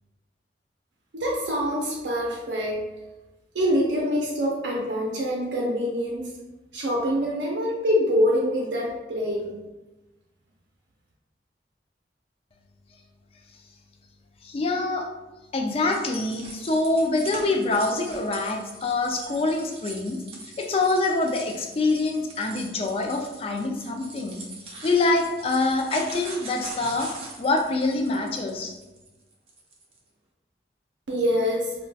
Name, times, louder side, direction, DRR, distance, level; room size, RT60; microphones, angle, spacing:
voice 1, 1.1-2.9 3.5-6.3 6.7-9.6 31.1-31.7, equal, 85° right, -3 dB, 0.5 m, -25 dB
voice 2, 14.4-15.1 15.5-20.2 20.6-24.4 24.8-27.1 27.4-28.7, left 2 dB, 30° left, 2 dB, 0.3 m, -25 dB
sound 1, 15.9-30.0, right 2 dB, 35° right, 0.5 m, -42 dB
2.3 x 2.2 x 3.9 m, 1.1 s
head